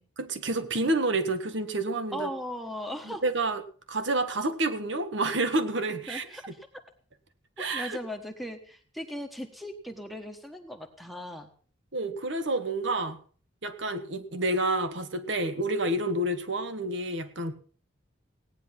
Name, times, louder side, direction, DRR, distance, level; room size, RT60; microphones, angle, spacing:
voice 1, 0.2-2.3 3.0-3.6 3.9-6.3 7.6-8.0 11.9-13.2 13.6-17.5, right 2 dB, 70° right, 9 dB, 1.5 m, -29 dB
voice 2, 2.1-3.2 6.1-6.7 7.7-11.5, equal, ahead, 6 dB, 1.1 m, -38 dB
17.5 x 9.9 x 5.7 m, 0.43 s
head